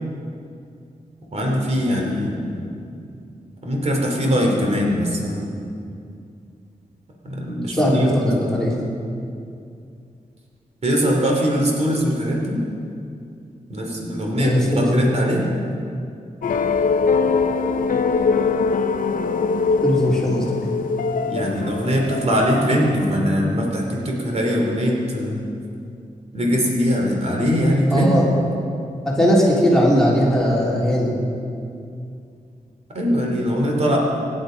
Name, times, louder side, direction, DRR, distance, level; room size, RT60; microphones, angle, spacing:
voice 1, 1.3-2.7 3.6-5.5 7.2-8.1 8.3-8.5 10.8-12.6 13.7-15.4 21.2-25.4 26.3-28.2 32.9-34.0, equal, 50° right, -1 dB, 3.2 m, -21 dB
voice 2, 7.7-8.7 14.4-15.0 19.8-20.5 27.9-28.3 29.1-31.1, equal, 5° left, -6 dB, 3.6 m, -18 dB
sound 1, 16.4-23.0, left 4 dB, 85° left, 0.8 m, -22 dB
25.0 x 11.0 x 5.2 m, 2.5 s
wide cardioid pair, 145°, 14 cm